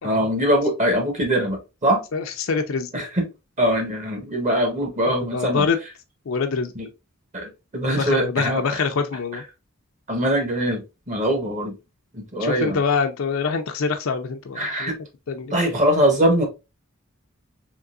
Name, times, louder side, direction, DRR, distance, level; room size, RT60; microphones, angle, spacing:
voice 1, 0.0-2.0 2.9-3.2 3.6-5.7 6.7-6.9 7.3-8.6 10.1-11.8 12.1-12.8 14.6-15.0 15.5-16.5, equal, 35° right, 1.1 m, -22 dB
voice 2, 2.1-2.9 5.3-5.8 6.3-6.7 8.0-9.4 12.4-14.9 15.3-15.6, left 5 dB, 75° left, 0.5 m, -25 dB
3.7 x 2.9 x 2.4 m
head